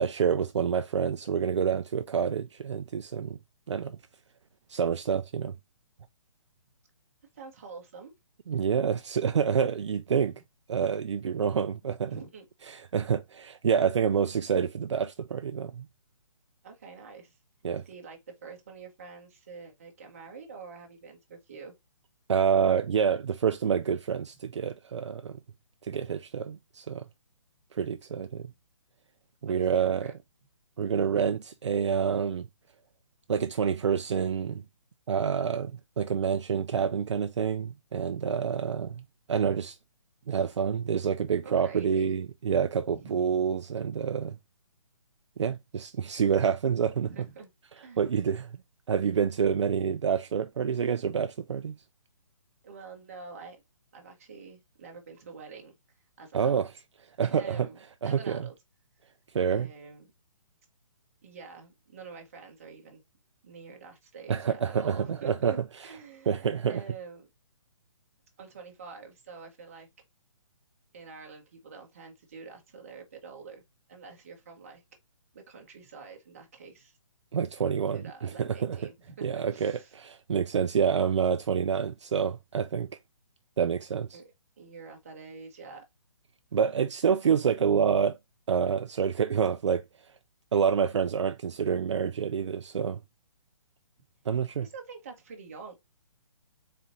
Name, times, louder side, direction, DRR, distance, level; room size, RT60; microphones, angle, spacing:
voice 1, 0.0-3.4 3.7-4.0 4.7-5.6 8.5-10.3 10.7-12.1 12.7-15.9 17.6-17.8 22.3-25.4 25.8-27.1 27.7-28.5 29.4-30.1 30.8-32.5 33.3-34.6 35.1-39.0 39.3-39.8 40.3-44.4 45.4-47.3 48.0-48.6 48.9-51.8 56.3-56.7 57.2-57.7 58.0-58.5 59.3-59.7 64.3-65.6 66.3-66.8 77.3-78.9 79.2-82.9 83.6-84.2 86.5-88.2 88.5-89.8 90.5-93.0 94.3-94.7, right 7 dB, 65° right, 0.4 m, -27 dB
voice 2, 7.3-8.1 12.1-12.4 16.6-17.4 17.7-21.7 29.5-30.1 41.4-42.1 42.9-43.2 47.1-47.5 47.8-48.0 52.6-53.6 53.9-55.7 56.2-56.7 57.2-57.8 58.0-58.5 59.5-60.1 61.2-63.0 63.4-67.3 68.4-69.9 70.9-73.6 73.9-74.8 75.3-77.0 77.9-79.9 84.1-85.8 94.6-95.7, right 5 dB, 25° right, 1.1 m, -46 dB
4.2 x 3.7 x 2.5 m
hypercardioid pair, 180°, 17 cm